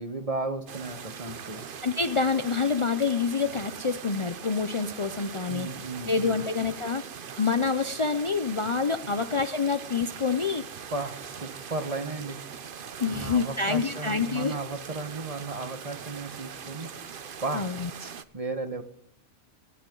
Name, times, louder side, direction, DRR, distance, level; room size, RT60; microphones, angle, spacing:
voice 1, 0.0-1.8 5.5-6.5 9.0-9.1 10.9-12.4 13.1-16.9 17.4-17.7 18.0-18.8, right 3 dB, 35° right, 9 dB, 1.4 m, -35 dB
sound 1, 0.7-18.2, right 7 dB, 55° right, 1.0 m, -41 dB
voice 2, 1.8-5.7 6.1-7.0 7.4-10.6 13.0-14.6 17.5-17.9, left 5 dB, 35° left, 10 dB, 0.6 m, -27 dB
23.5 x 11.0 x 3.9 m, 0.70 s
omnidirectional pair, 1.1 m